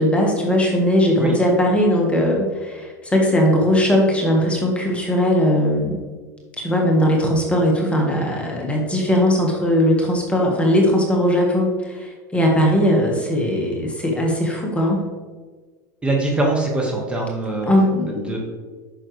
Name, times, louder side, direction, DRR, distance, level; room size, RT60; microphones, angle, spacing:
voice 1, 0.0-6.0 6.6-15.0 17.6-18.4, equal, 10° left, -1 dB, 1.6 m, -19 dB
voice 2, 16.0-17.7 18.1-18.4, right 2 dB, 10° right, -1 dB, 1.7 m, -22 dB
8.6 x 6.4 x 3.3 m, 1.4 s
hypercardioid pair, 95°, 10 cm